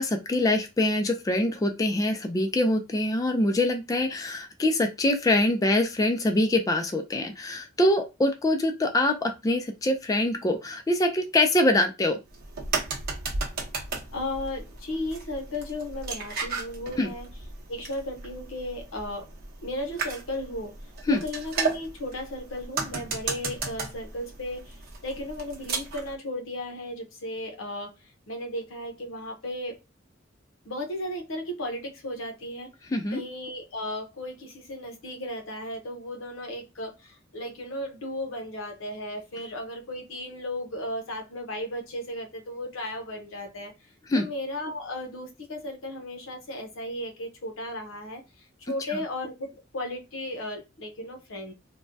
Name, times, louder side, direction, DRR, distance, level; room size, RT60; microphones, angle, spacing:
voice 1, 0.0-12.2 17.0-17.1 21.1-21.2 32.9-33.2 44.1-44.2 48.9-49.0, left 1 dB, 15° left, 0.3 m, -24 dB
sound 1, 12.3-26.1, right 4 dB, 50° right, 0.8 m, -35 dB
voice 2, 14.1-17.3 17.7-19.3 19.6-20.8 21.1-24.8 25.0-27.9 28.3-29.8 30.6-32.7 33.1-43.7 44.1-51.5, left 1 dB, 85° left, 0.8 m, -35 dB
3.2 x 2.1 x 2.5 m
head